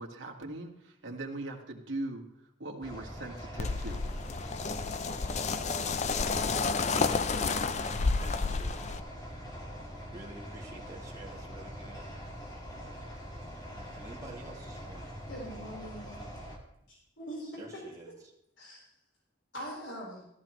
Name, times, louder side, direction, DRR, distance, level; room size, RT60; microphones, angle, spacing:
voice 1, 0.0-2.3 2.6-4.0, right 2 dB, 85° right, 0 dB, 1.9 m, -40 dB
sound 1, 2.8-16.6, equal, 20° left, 1.9 m, -44 dB
sound 2, 3.6-9.0, left 4 dB, 35° left, 0.5 m, -30 dB
voice 2, 4.9-5.8 6.8-8.9 10.1-12.1 13.6-15.1 17.6-18.3, right 2 dB, 20° right, -4 dB, 2.3 m, -49 dB
voice 3, 15.3-16.2 16.9-17.6 18.6-18.8 19.5-20.2, equal, 85° left, -3 dB, 4.4 m, -42 dB
14.5 x 14.0 x 3.2 m, 0.80 s
head